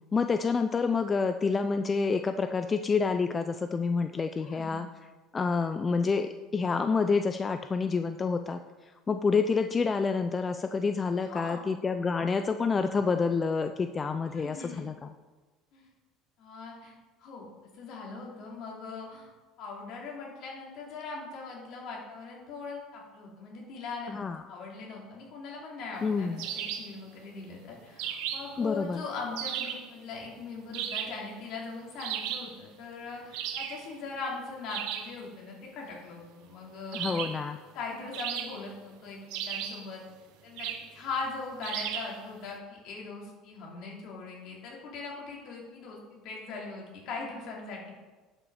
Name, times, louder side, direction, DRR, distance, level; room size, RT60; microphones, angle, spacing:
voice 1, 0.1-4.9 5.3-15.1 24.1-24.4 26.0-26.5 28.6-29.0 36.9-37.6, left 4 dB, 20° left, 8 dB, 0.4 m, -28 dB
voice 2, 4.3-4.8 11.2-11.6 14.3-14.9 15.7-15.9 16.4-16.9 17.2-17.5 17.7-19.3 19.6-24.1 24.5-37.2 37.7-40.0 40.4-47.9, left 4 dB, 55° left, -2 dB, 3.0 m, -40 dB
sound 1, 26.4-27.0 28.0-28.6 29.4-29.9 30.7-31.3 32.0-32.6 33.3-33.8 34.7-35.2 36.9-37.5 38.1-38.8 39.3-39.9 40.6-40.9 41.6-42.2, right 9 dB, 80° right, 1.0 m, -35 dB
11.0 x 6.0 x 4.8 m, 1.3 s
cardioid pair, 135°, 0 cm